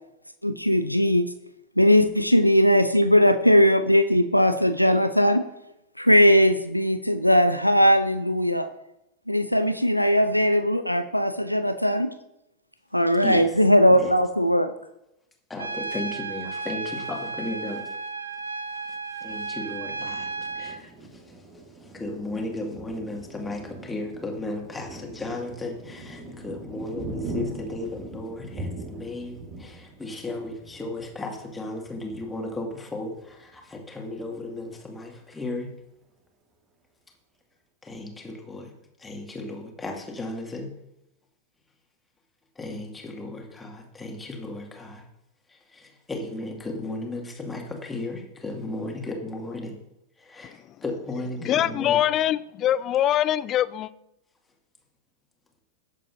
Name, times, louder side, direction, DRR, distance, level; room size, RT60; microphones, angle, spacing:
voice 1, 0.4-1.2 1.8-5.4 6.0-8.7 9.3-12.1 12.9-14.7, equal, 90° left, 0.5 m, -19 dB
voice 2, 13.2-13.6 13.9-14.2 15.5-18.0 18.7-21.4 21.8-35.7 37.8-38.7 39.0-40.7 42.6-45.0 45.5-49.8 50.2-52.0, left 2 dB, 10° left, 2.2 m, -35 dB
Trumpet, 15.6-20.8, right 3 dB, 75° right, 0.7 m, -33 dB
Thunder, 19.3-33.6 34.1-34.2 34.5-35.1, right 2 dB, 30° right, 2.0 m, -41 dB
voice 3, 51.4-53.9, left 11 dB, 30° left, 0.4 m, -23 dB
18.5 x 7.5 x 2.7 m
figure-of-eight pair, 90°, 0 cm